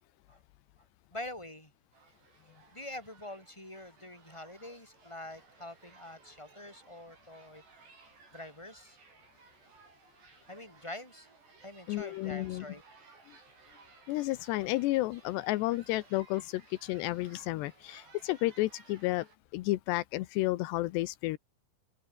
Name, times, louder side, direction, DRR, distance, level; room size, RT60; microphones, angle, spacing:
voice 1, 1.1-1.7 2.7-7.6 8.3-9.0 10.5-11.3 11.6-12.8, left 1 dB, 5° left, 7.0 m, -45 dB
sound 1, 1.9-19.4, right 4 dB, 75° right, 10.0 m, -59 dB
voice 2, 11.9-12.7 13.3-13.4 14.1-19.3 19.5-21.4, left 18 dB, 85° left, 2.9 m, -32 dB
omnidirectional pair, 5.0 m